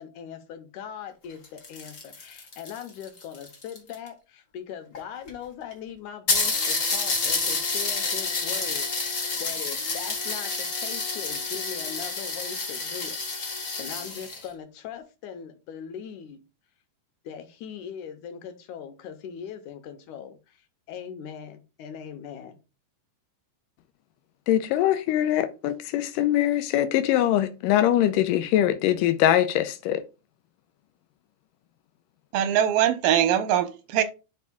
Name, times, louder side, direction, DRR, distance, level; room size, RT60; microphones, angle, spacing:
voice 1, 0.0-16.4 17.2-20.6 20.9-22.6, left 8 dB, 70° left, 2.2 m, -40 dB
sound 1, 1.3-4.1 4.9-5.0 5.3-5.4 5.7-5.8 6.3-14.5, left 3 dB, 55° left, 0.9 m, -29 dB
voice 2, 24.5-30.0, left 12 dB, 85° left, 2.3 m, -22 dB
voice 3, 32.3-34.0, right 10 dB, 85° right, 2.5 m, -22 dB
11.0 x 4.8 x 2.3 m
omnidirectional pair, 3.9 m